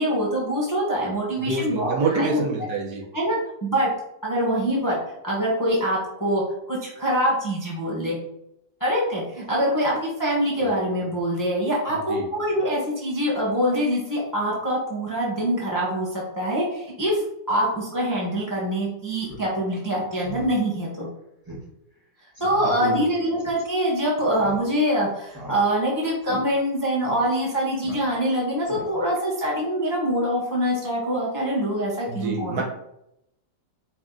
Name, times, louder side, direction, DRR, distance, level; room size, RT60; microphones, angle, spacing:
voice 1, 0.0-2.4 3.1-3.9 4.2-5.0 5.2-6.4 6.7-8.2 8.8-21.1 22.4-32.6, equal, 15° left, -5 dB, 0.8 m, -24 dB
voice 2, 1.4-3.1 10.6-10.7 12.1-12.3 22.8-23.0 32.1-32.6, right 3 dB, 70° right, -1 dB, 1.4 m, -26 dB
Speech synthesizer, 19.2-19.5 19.8-19.9 20.2-20.5 20.9-21.0 21.5-21.6 21.9-22.0 22.4-22.6 23.4-23.6 24.3-24.9 25.3-25.9 26.2-26.4 27.0-27.2 27.8-28.3 28.6-29.2, right 1 dB, 15° right, 1.0 m, -39 dB
4.8 x 2.8 x 3.7 m, 0.80 s
omnidirectional pair, 1.8 m